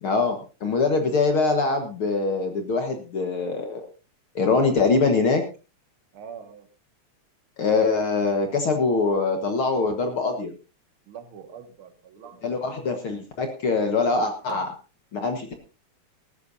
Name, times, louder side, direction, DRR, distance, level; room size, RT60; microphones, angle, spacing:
voice 1, 0.0-3.9 4.4-5.4 7.6-10.5 12.4-14.7 15.1-15.6, left 4 dB, 50° left, 5 dB, 2.0 m, -23 dB
voice 2, 6.1-6.7 11.1-12.6 14.5-14.6, right 8 dB, 50° right, 6 dB, 2.3 m, -42 dB
18.5 x 15.0 x 2.7 m, 0.32 s
omnidirectional pair, 3.3 m